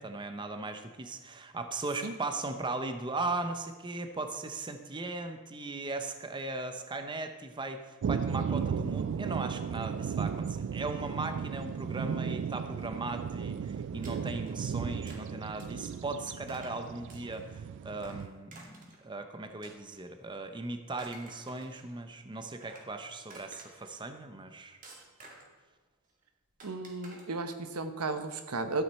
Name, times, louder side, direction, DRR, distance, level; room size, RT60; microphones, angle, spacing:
voice 1, 0.0-24.8, right 2 dB, 20° right, 7 dB, 0.7 m, -38 dB
sound 1, 8.0-18.3, right 7 dB, 55° right, 0.3 m, -35 dB
sound 2, 14.0-14.5 15.1-15.2 15.6-15.9 16.5-16.8 17.1-17.5 18.0-19.0 19.6-20.3 20.8-21.9 22.4-22.9 23.3-24.0 24.8-25.6 26.6-27.2, right 2 dB, 40° right, 2.1 m, -52 dB
voice 2, 26.6-28.8, right 3 dB, 85° right, 8 dB, 1.0 m, -34 dB
13.0 x 9.3 x 4.2 m, 1.3 s
head